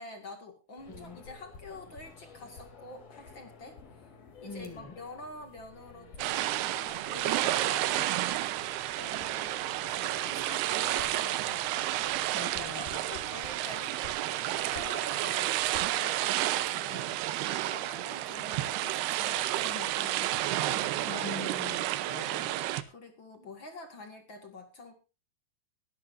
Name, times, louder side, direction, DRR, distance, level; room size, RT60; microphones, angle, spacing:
voice 1, 0.0-3.8 4.4-8.3 9.0-9.6 9.9-11.8 12.6-13.9 14.4-17.2 17.6-21.5 22.9-24.9, left 2 dB, 40° left, 5 dB, 2.0 m, -47 dB
sound 1, 0.8-15.9, left 4 dB, 65° left, 4.6 m, -52 dB
voice 2, 4.4-4.9 12.3-13.1 21.1-22.5, left 2 dB, 10° left, 5 dB, 1.0 m, -43 dB
sound 2, 6.2-22.8, right 14 dB, 85° right, 2.9 m, -31 dB
22.5 x 12.0 x 2.6 m, 0.29 s
omnidirectional pair, 4.6 m